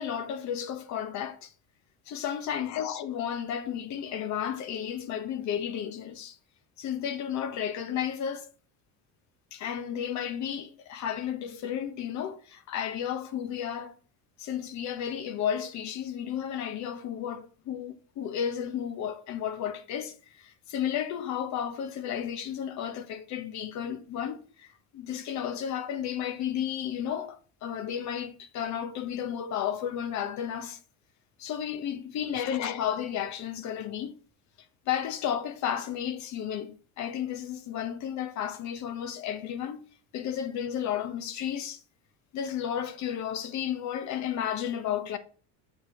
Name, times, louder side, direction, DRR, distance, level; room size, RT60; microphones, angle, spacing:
voice 1, 0.0-1.5 2.1-6.4 6.8-8.5 9.5-13.9 14.4-24.7 24.9-30.8 31.4-34.1 34.9-41.8 42.3-45.2, left 9 dB, 50° left, 0.9 m, -33 dB
6.7 x 4.7 x 4.2 m
cardioid pair, 145°, 36 cm